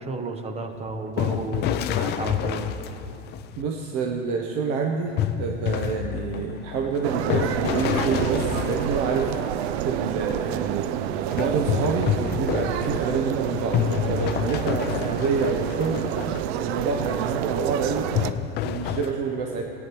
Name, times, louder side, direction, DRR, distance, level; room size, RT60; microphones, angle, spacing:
voice 1, 0.0-2.7 15.0-15.2, right 3 dB, 20° right, 6 dB, 0.9 m, -32 dB
sound 1, 0.7-3.6 5.2-9.8 11.3-16.6 17.0-17.2 18.1-19.1, left 10 dB, 30° left, 0.4 m, -29 dB
voice 2, 3.6-5.1 5.4-9.3 9.8-10.9 11.3-16.1 16.6-18.1 18.6-19.6, right 5 dB, 50° right, 2 dB, 0.9 m, -27 dB
sound 2, 7.0-18.3, right 11 dB, 70° right, 0.5 m, -28 dB
17.0 x 9.4 x 3.1 m, 2.7 s
hypercardioid pair, 110°, 33 cm